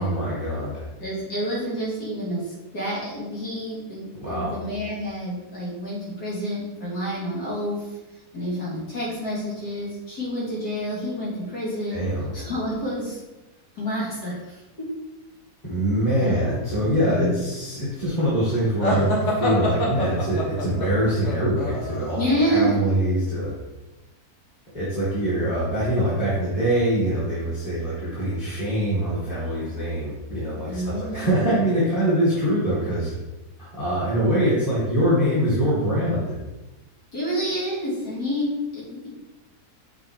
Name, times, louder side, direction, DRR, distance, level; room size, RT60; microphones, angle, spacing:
voice 1, 0.0-0.9 4.2-4.6 11.9-12.4 15.7-22.2 22.5-23.6 24.7-33.1 33.6-36.4, right 1 dB, 20° left, -10 dB, 1.9 m, -24 dB
voice 2, 1.0-7.9 8.3-12.0 12.3-13.2 13.8-14.9 16.2-16.5 17.1-17.4 22.2-22.8 30.7-31.3 37.1-39.1, equal, 85° left, -7 dB, 3.0 m, -28 dB
sound 1, 18.8-22.5, left 1 dB, 50° left, 1.6 m, -26 dB
5.9 x 4.6 x 4.5 m, 1.1 s
omnidirectional pair, 1.6 m